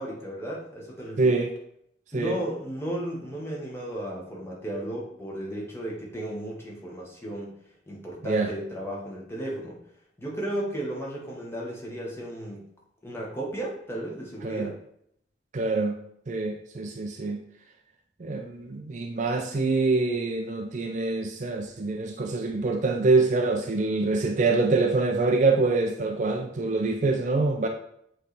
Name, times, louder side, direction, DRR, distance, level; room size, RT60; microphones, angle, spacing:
voice 1, 0.0-1.3 2.1-7.5 7.9-9.8 10.2-12.7 13.0-14.7, right 1 dB, 15° left, -3 dB, 1.1 m, -34 dB
voice 2, 1.2-1.5 2.1-2.4 8.2-8.5 14.4-14.7 15.5-16.0 16.3-17.4 18.2-27.7, right 3 dB, 40° right, 4 dB, 0.4 m, -25 dB
7.5 x 3.3 x 4.0 m, 0.72 s
head